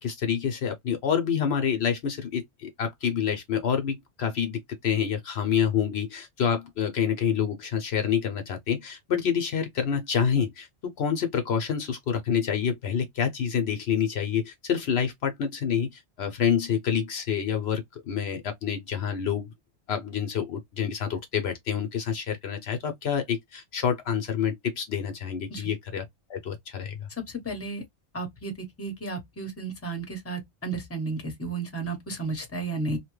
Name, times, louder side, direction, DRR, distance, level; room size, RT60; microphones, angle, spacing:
voice 1, 0.0-19.5 19.9-26.0 26.3-27.1, left 7 dB, 70° left, 0.9 m, -27 dB
voice 2, 27.3-27.8 28.1-33.0, right 3 dB, 15° left, 0.9 m, -33 dB
2.9 x 2.2 x 3.0 m
omnidirectional pair, 1.2 m